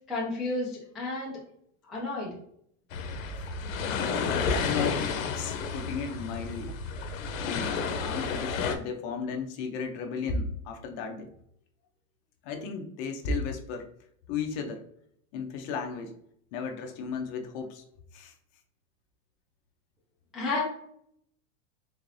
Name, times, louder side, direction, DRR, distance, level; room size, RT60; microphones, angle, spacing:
voice 1, 0.1-1.4 1.9-2.3 20.3-20.6, left 3 dB, ahead, -7 dB, 0.3 m, -31 dB
sound 1, 2.9-8.8, left 5 dB, 85° left, 0.7 m, -31 dB
voice 2, 4.6-6.7 7.4-11.3 12.4-13.9 14.3-14.8 15.3-16.1 16.5-17.8 18.1-18.3, left 5 dB, 45° left, 5 dB, 0.6 m, -34 dB
3.8 x 3.2 x 2.6 m, 0.70 s
supercardioid pair, 145°, 39 cm